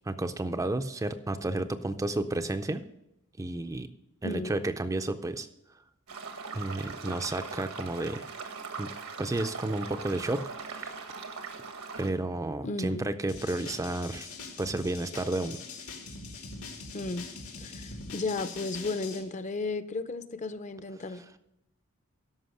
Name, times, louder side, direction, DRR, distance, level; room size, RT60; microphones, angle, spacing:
voice 1, 0.0-2.8 3.4-3.9 4.2-5.5 6.5-8.3 8.8-8.9 9.2-10.9 12.0-14.3 14.6-15.6, right 2 dB, 15° right, 9 dB, 0.4 m, -32 dB
voice 2, 4.2-4.6 12.6-13.1 16.9-17.3 17.6-21.4, left 3 dB, 35° left, 12 dB, 0.6 m, -34 dB
sound 1, 6.1-12.1, right 4 dB, 85° right, 1.4 m, -40 dB
sound 2, 13.3-19.2, left 4 dB, 85° left, 2.0 m, -43 dB
13.0 x 5.5 x 6.5 m, 0.86 s
head